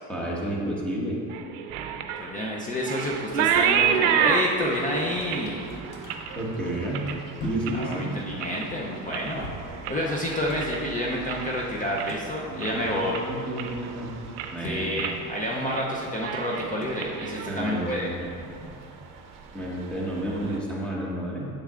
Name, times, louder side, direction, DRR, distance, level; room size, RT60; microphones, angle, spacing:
voice 1, 0.1-1.2 6.4-7.0 7.4-8.1 12.5-14.1 14.5-14.9 17.4-18.3 19.5-21.5, right 1 dB, 5° left, -4 dB, 1.2 m, -31 dB
sound 1, 1.3-8.0 8.3-8.8 9.1-11.5 11.8-12.3 12.6-12.7 13.1-13.9 14.2-14.6 15.0-15.2 15.5-15.9 16.1-18.0, right 8 dB, 85° right, 0.6 m, -29 dB
voice 2, 2.2-5.7 7.8-9.5 9.9-13.2 14.6-18.1, equal, 20° left, -3 dB, 0.6 m, -29 dB
sound 2, 3.1-20.6, right 5 dB, 50° right, 0.8 m, -46 dB
sound 3, 3.9-4.1 4.4-13.3 13.6-19.5, left 1 dB, 60° left, 1.1 m, -45 dB
7.0 x 6.8 x 2.5 m, 2.5 s
supercardioid pair, 110°, 42 cm